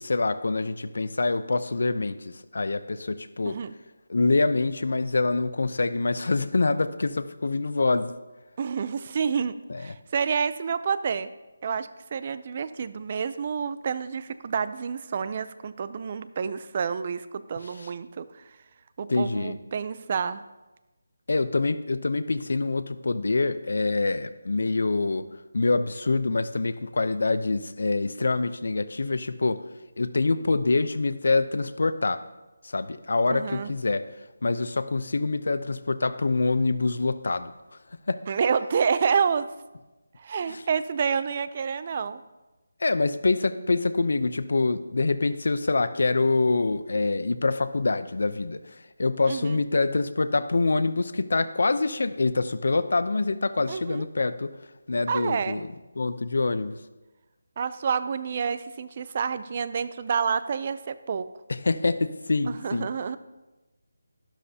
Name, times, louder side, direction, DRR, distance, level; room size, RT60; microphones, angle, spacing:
voice 1, 0.0-3.6 4.1-8.1 9.7-9.9 19.1-19.6 21.3-25.3 25.5-29.6 30.0-32.2 32.7-34.0 34.4-37.5 38.1-38.2 40.5-40.6 42.8-48.6 49.0-54.5 54.9-55.7 56.0-56.8 61.5-62.9, left 3 dB, 65° left, 12 dB, 0.6 m, -25 dB
voice 2, 8.6-11.3 11.6-18.4 19.0-20.4 33.3-33.7 38.3-39.5 40.2-42.2 49.3-49.6 53.7-54.1 55.1-55.6 57.6-61.3 62.5-63.2, right 6 dB, 30° right, 14 dB, 0.4 m, -28 dB
12.0 x 11.5 x 2.8 m, 1.1 s
figure-of-eight pair, 170°, 0 cm